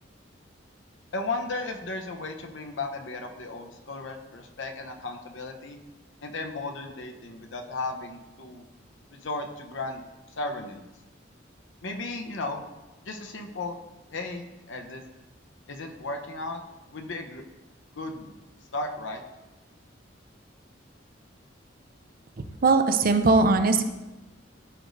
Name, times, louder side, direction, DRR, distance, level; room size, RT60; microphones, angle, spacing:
voice 1, 1.1-5.8 6.2-8.6 9.1-10.0 10.4-10.8 11.8-12.6 13.0-13.8 14.1-15.0 15.7-16.6 16.9-17.4 17.9-18.3 18.7-19.2, left 2 dB, 80° left, 4 dB, 0.8 m, -35 dB
voice 2, 22.6-23.9, right 3 dB, 50° right, 7 dB, 0.6 m, -20 dB
13.0 x 5.0 x 2.6 m, 1.1 s
head